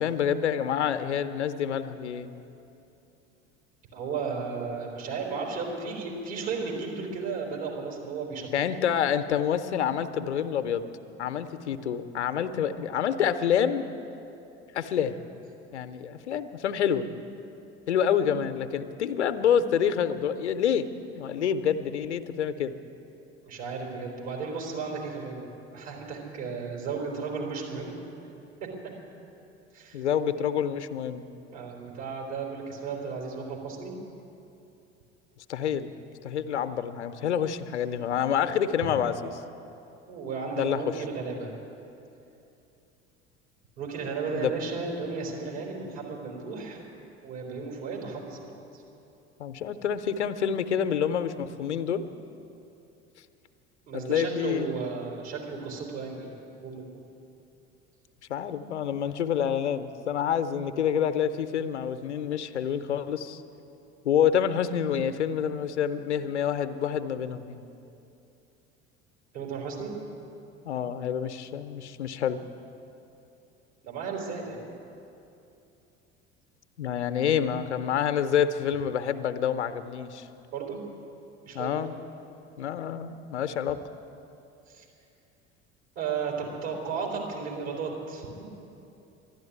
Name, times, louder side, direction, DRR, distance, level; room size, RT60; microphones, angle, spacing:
voice 1, 0.0-2.3 8.5-10.9 11.2-13.8 14.7-15.1 15.7-17.1 17.9-20.9 21.2-22.7 29.9-31.3 35.5-35.9 36.2-39.3 40.6-40.8 44.3-44.8 45.5-45.6 49.4-52.0 54.1-54.8 58.3-63.4 64.0-67.6 70.6-72.4 76.8-80.3 81.5-81.9 82.6-83.8, left 8 dB, 80° left, 11 dB, 0.7 m, -27 dB
voice 2, 3.9-8.7 23.4-25.4 25.7-28.0 29.7-30.0 30.4-30.5 31.5-33.9 40.1-41.5 43.8-46.9 47.2-48.8 53.9-57.1 69.3-70.0 73.8-74.7 80.5-80.8 81.4-81.9 84.7-84.9 86.0-88.4, right 5 dB, 65° right, -1 dB, 4.0 m, -34 dB
12.0 x 11.5 x 9.7 m, 2.8 s
figure-of-eight pair, 65°, 34 cm